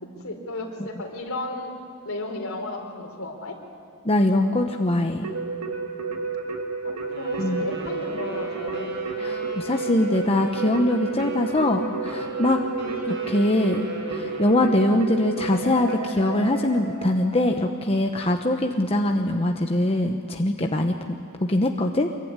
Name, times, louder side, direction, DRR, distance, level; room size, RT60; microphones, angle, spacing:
voice 1, 0.0-1.7 2.0-3.6 6.8-8.9, left 2 dB, 65° left, 2 dB, 4.3 m, -34 dB
voice 2, 4.0-5.3 7.4-7.6 9.2-12.6 13.0-13.9 14.1-21.2 21.5-22.1, left 1 dB, 25° left, 3 dB, 1.1 m, -22 dB
Keyboard (musical), 5.2-17.7, right 4 dB, 85° right, 2.5 m, -31 dB
Wind instrument woodwind instrument, 7.0-15.0, equal, 55° right, 6.3 m, -40 dB
25.5 x 22.5 x 9.8 m, 2.4 s
head